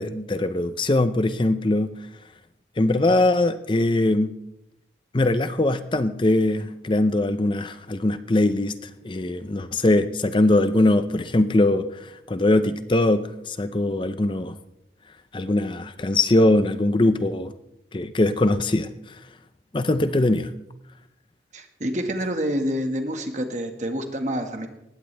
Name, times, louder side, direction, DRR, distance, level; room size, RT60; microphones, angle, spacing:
voice 1, 0.0-1.9 2.8-4.3 5.1-14.6 15.3-17.5 17.9-19.2 19.7-20.5, left 2 dB, 25° left, 11 dB, 0.5 m, -21 dB
voice 2, 21.5-24.7, equal, 40° right, 5 dB, 1.7 m, -27 dB
19.5 x 16.0 x 3.4 m, 0.85 s
head